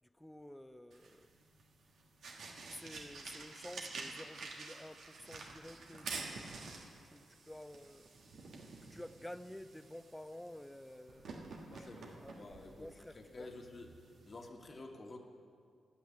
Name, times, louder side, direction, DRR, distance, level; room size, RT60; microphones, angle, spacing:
voice 1, 0.0-1.3 2.7-8.1 8.9-13.5, left 1 dB, 10° left, 0.5 m, -52 dB
sound 1, 0.9-14.5, right 3 dB, 75° right, 1.5 m, -49 dB
voice 2, 11.6-12.9 13.1-13.9 14.2-15.2, left 2 dB, 45° left, 1.5 m, -50 dB
13.0 x 6.3 x 8.9 m
cardioid pair, 60°, 0 cm